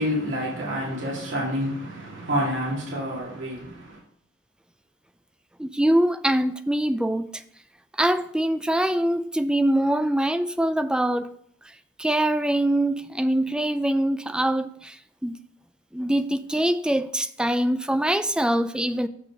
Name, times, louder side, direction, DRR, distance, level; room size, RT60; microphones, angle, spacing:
voice 1, 0.0-4.0, equal, 85° right, 2.2 m, -28 dB
voice 2, 5.6-7.4 8.0-11.3 12.0-15.0 15.2-15.4 15.9-19.1, right 1 dB, 5° right, 0.3 m, -23 dB
7.0 x 5.9 x 5.9 m
head